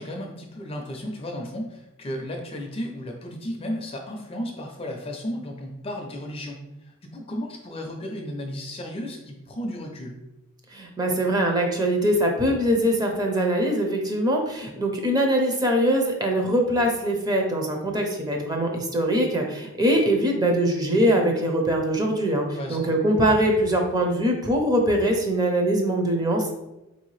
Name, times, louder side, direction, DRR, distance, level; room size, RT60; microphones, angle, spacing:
voice 1, 0.0-10.2 14.6-14.7 22.6-23.0, equal, 25° left, 2 dB, 0.4 m, -34 dB
voice 2, 10.7-26.5, right 1 dB, 20° right, 2 dB, 0.5 m, -22 dB
4.3 x 2.7 x 3.1 m, 0.96 s
head